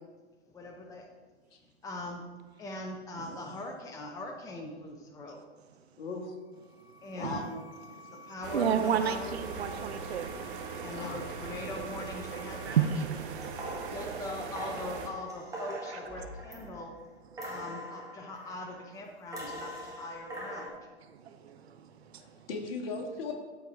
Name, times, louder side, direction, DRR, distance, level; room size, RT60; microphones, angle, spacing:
voice 1, 0.5-1.1 1.8-2.2 2.6-5.4 7.0-7.6 8.1-9.3 10.8-12.8 13.9-16.9 17.4-20.8, left 2 dB, 10° left, 0.7 m, -41 dB
voice 2, 3.2-3.6 5.8-6.1 6.7-7.5 7.9-10.3 12.6-13.1 13.4-13.9 15.7-16.0 17.3-17.6 21.0-22.5 22.9-23.0, right 8 dB, 65° right, 0.8 m, -34 dB
voice 3, 6.0-6.4 7.1-7.4 7.9-8.1 10.9-11.2 22.2-23.3, left 4 dB, 55° left, 1.7 m, -38 dB
sound 1, 6.4-12.9, left 2 dB, 75° left, 1.4 m, -51 dB
sound 2, 8.4-15.1, right 5 dB, 50° right, 1.1 m, -40 dB
sound 3, 13.3-17.0 17.3-18.8 19.3-20.7, right 1 dB, 10° right, 1.5 m, -42 dB
12.5 x 4.6 x 3.5 m
figure-of-eight pair, 110°, 34 cm